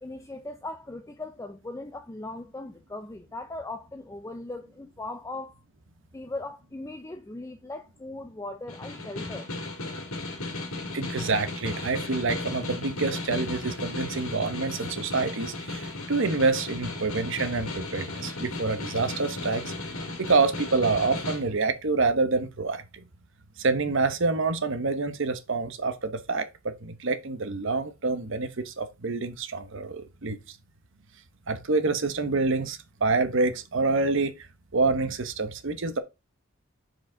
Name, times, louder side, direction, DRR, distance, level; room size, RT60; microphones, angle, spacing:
voice 1, 0.0-5.6 6.1-9.5, left 2 dB, 15° left, 0.4 m, -39 dB
Snare drum, 8.7-21.4, left 2 dB, 80° left, 2.0 m, -35 dB
voice 2, 10.9-19.7 20.2-23.0 23.6-30.4 31.5-34.3 34.7-36.0, right 3 dB, 60° right, 0.9 m, -27 dB
6.4 x 4.9 x 3.8 m
head